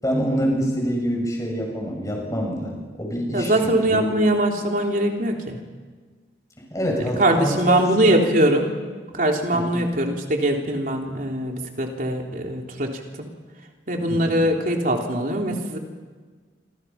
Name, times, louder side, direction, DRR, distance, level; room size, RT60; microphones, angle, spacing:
voice 1, 0.0-4.1 6.7-8.2 9.5-9.8 14.1-14.4, equal, 20° left, 0 dB, 7.3 m, -26 dB
voice 2, 3.3-5.6 7.2-8.7 9.1-12.9 13.2-13.3 13.9-15.8, right 1 dB, 50° right, 1 dB, 3.5 m, -22 dB
26.5 x 26.5 x 5.9 m, 1.5 s
head